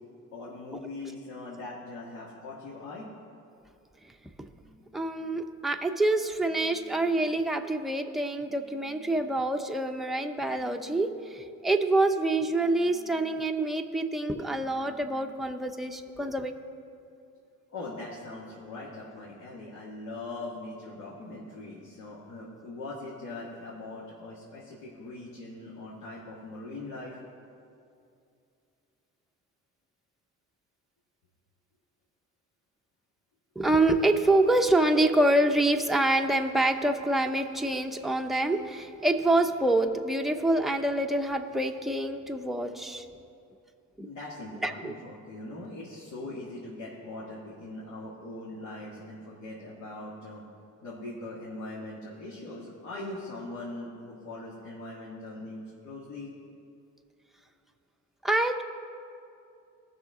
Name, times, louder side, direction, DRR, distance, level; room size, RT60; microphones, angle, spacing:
voice 1, 0.3-3.1 17.7-27.2 44.0-50.4 50.8-56.3, left 2 dB, 75° left, -6 dB, 2.1 m, -41 dB
voice 2, 4.4-16.5 33.6-43.1 44.0-44.1 44.6-44.9 58.2-58.6, right 2 dB, ahead, 4 dB, 0.7 m, -26 dB
18.5 x 6.3 x 3.8 m, 2.6 s
cardioid pair, 90°, 30 cm